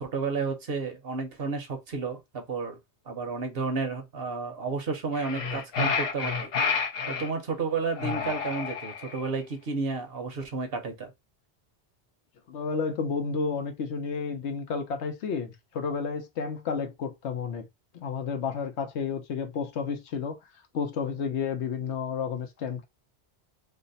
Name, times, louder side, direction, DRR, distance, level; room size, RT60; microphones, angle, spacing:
voice 1, 0.0-2.8 3.1-6.4 7.1-11.1, right 4 dB, 60° right, 1.0 m, -32 dB
sound 1, 5.1-7.3 8.0-9.2, left 5 dB, 60° left, 0.9 m, -29 dB
voice 2, 12.5-17.7 17.9-20.4 20.7-22.9, left 5 dB, 85° left, 1.0 m, -31 dB
3.3 x 2.0 x 3.9 m
omnidirectional pair, 1.1 m